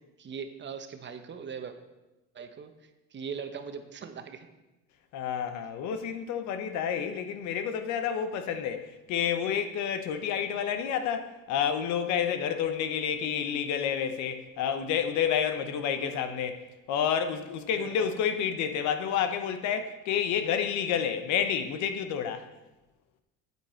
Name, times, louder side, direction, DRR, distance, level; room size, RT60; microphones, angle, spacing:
voice 1, 0.0-1.7 2.3-4.5 16.0-16.3 17.8-18.1, right 6 dB, 40° right, 1.1 m, -41 dB
voice 2, 5.1-22.5, left 8 dB, 75° left, 1.0 m, -29 dB
9.5 x 8.3 x 4.5 m
cardioid pair, 100°, 29 cm